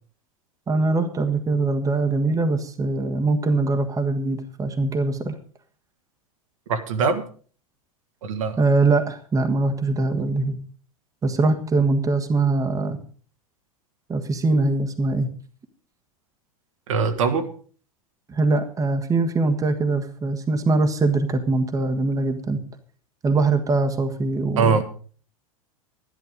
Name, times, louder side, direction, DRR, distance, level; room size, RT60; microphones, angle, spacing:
voice 1, 0.7-5.4 8.6-10.6 11.2-13.0 14.1-15.3 18.3-22.6 23.2-24.8, right 3 dB, 20° right, 5 dB, 1.5 m, -22 dB
voice 2, 6.7-7.2 8.2-8.6 16.9-17.5 24.6-24.8, right 5 dB, 65° right, 6 dB, 1.8 m, -21 dB
12.5 x 11.5 x 5.3 m, 0.42 s
figure-of-eight pair, 85°, 18 cm